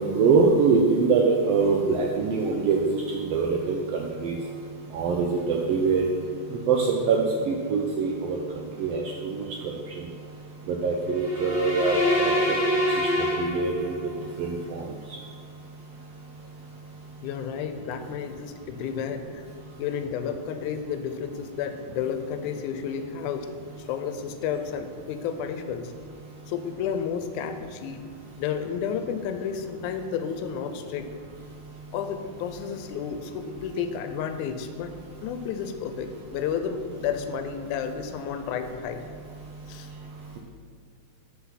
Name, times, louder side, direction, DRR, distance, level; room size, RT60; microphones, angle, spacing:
voice 1, 0.0-4.4 4.9-6.1 6.7-8.4 8.8-9.5 10.7-12.0 12.5-12.6 13.0-13.1 13.4-13.7 14.4-14.8, right 4 dB, 80° right, -1 dB, 1.4 m, -23 dB
sound 1, 11.1-14.2, left 1 dB, 40° right, 2.1 m, -25 dB
voice 2, 17.2-19.5 19.8-23.5 23.8-25.9 26.5-28.1 28.4-31.1 31.9-34.9 35.2-39.1 39.7-39.9, left 7 dB, 90° left, 8 dB, 2.0 m, -31 dB
5.9 x 5.8 x 5.7 m, 2.2 s
omnidirectional pair, 3.4 m